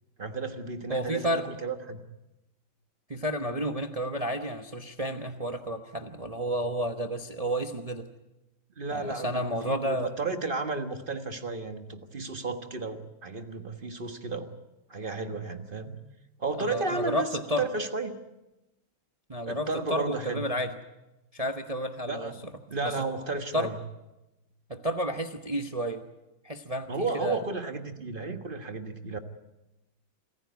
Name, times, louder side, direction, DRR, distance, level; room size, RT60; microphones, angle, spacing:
voice 1, 0.2-2.0 8.8-14.5 14.9-16.0 16.4-18.1 19.5-20.5 22.0-23.8 26.9-29.2, right 3 dB, 30° right, 7 dB, 1.3 m, -33 dB
voice 2, 0.9-1.4 3.1-8.1 8.9-10.1 16.6-17.7 19.3-20.8 21.3-22.3 22.8-22.9 23.5-23.7 24.7-26.1 26.4-27.4, equal, 45° right, 7 dB, 0.4 m, -31 dB
27.0 x 15.0 x 9.5 m, 0.98 s
omnidirectional pair, 2.4 m